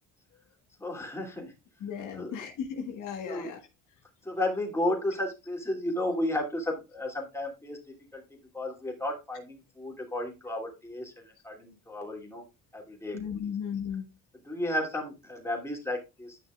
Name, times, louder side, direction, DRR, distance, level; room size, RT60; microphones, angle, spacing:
voice 1, 0.8-1.5 2.2-2.4 3.3-3.5 4.2-7.8 8.1-8.2 8.5-12.4 12.7-13.2 13.4-13.5 14.5-16.4, left 1 dB, 10° left, 0 dB, 2.8 m, -33 dB
voice 2, 1.8-3.6 13.1-14.0, left 7 dB, 70° left, 4 dB, 1.6 m, -35 dB
10.5 x 5.9 x 2.4 m, 0.26 s
cardioid pair, 105°, 32 cm